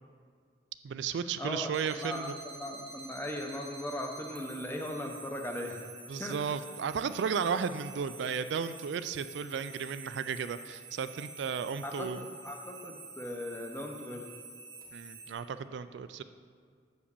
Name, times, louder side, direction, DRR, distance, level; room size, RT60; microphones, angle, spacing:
voice 1, 0.8-2.3 6.1-12.2 14.9-16.2, right 6 dB, 65° right, 11 dB, 0.3 m, -34 dB
voice 2, 1.4-1.7 2.0-5.8 6.2-6.4 11.8-14.3, left 1 dB, 10° left, 2 dB, 0.7 m, -38 dB
sound 1, 1.7-15.3, right 3 dB, 15° right, 1.0 m, -49 dB
7.1 x 5.0 x 6.8 m, 2.1 s
head